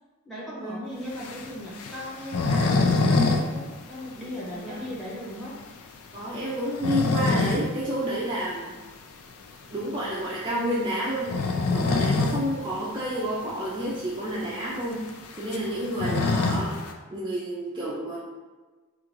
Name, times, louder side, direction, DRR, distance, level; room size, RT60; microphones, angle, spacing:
voice 1, 0.2-5.5, equal, ahead, -6 dB, 1.1 m, -37 dB
sound 1, 1.1-3.5 3.7-3.8 4.2-4.3 4.8-4.9 6.5-7.7 8.1-8.2 9.7-10.0 11.1-12.4 12.8-12.9 13.1-13.2 14.0-14.1 14.3-16.9, left 3 dB, 85° left, 0.5 m, -25 dB
voice 2, 6.1-8.8 9.7-15.0 15.4-16.8 17.1-18.2, equal, 20° right, -7 dB, 0.5 m, -30 dB
3.8 x 2.5 x 4.5 m, 1.3 s
head